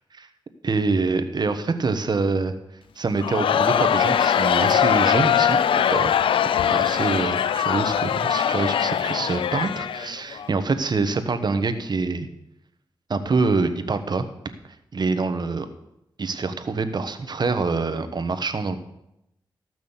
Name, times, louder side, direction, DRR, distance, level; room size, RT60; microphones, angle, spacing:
voice 1, 0.6-2.5 3.0-6.1 6.6-12.3 13.1-14.3 14.9-15.7 16.2-18.8, right 4 dB, 55° right, 9 dB, 1.2 m, -25 dB
Crowd, 3.2-10.5, left 9 dB, 90° left, 0.4 m, -21 dB
14.5 x 6.1 x 7.2 m, 0.85 s
cardioid pair, 65°, 9 cm